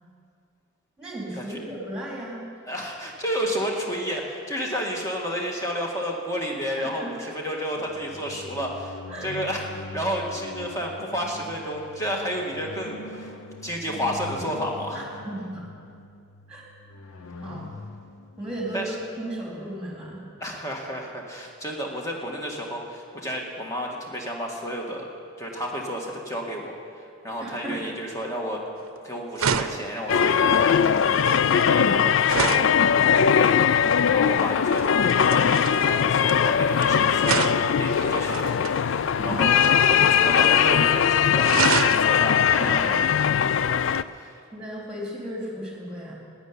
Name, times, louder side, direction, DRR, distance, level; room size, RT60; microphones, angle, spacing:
voice 1, 1.0-2.4 6.8-7.3 9.1-9.3 14.9-15.7 16.5-16.7 17.4-17.7 18.4-20.3 27.4-28.0 39.2-39.5 42.6-43.0 44.5-46.1, right 1 dB, 5° right, -4 dB, 3.7 m, -35 dB
voice 2, 2.7-13.3 13.6-15.2 18.7-18.9 20.4-25.1 25.4-26.8 27.2-28.6 29.0-31.1 31.6-38.5 39.2-39.6 39.9-41.5 41.8-43.6 44.1-44.4, equal, 15° left, -1 dB, 1.9 m, -31 dB
sound 1, 7.8-19.4, left 2 dB, 90° left, 0.8 m, -42 dB
sound 2, 28.8-29.0 29.4-32.8 34.8-36.8 37.2-38.8 39.5-40.7 40.9-41.0 41.4-42.1 43.9-44.0, right 6 dB, 80° right, 0.7 m, -29 dB
sound 3, 30.1-44.0, left 8 dB, 60° left, 0.4 m, -20 dB
13.0 x 10.0 x 9.7 m, 2.4 s
head